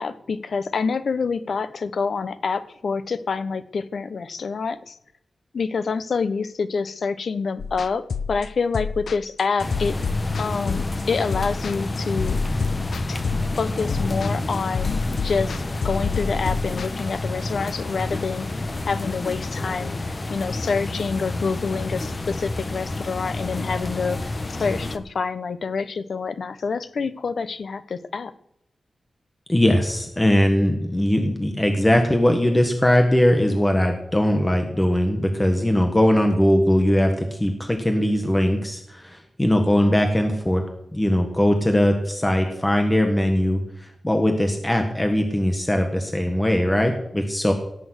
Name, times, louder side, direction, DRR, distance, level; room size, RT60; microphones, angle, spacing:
voice 1, 0.0-5.0 5.5-10.0 10.4-12.4 13.1-13.2 13.5-24.3 24.6-28.3, left 5 dB, 65° left, 13 dB, 0.9 m, -27 dB
sound 1, 7.6-16.9, left 5 dB, 85° left, 0.6 m, -29 dB
sound 2, 9.6-25.0, left 2 dB, 30° left, 1.0 m, -29 dB
voice 2, 29.5-40.6 40.9-47.5, left 1 dB, 10° left, 4 dB, 1.5 m, -20 dB
17.5 x 7.0 x 8.1 m, 0.76 s
wide cardioid pair, 165°, 0 cm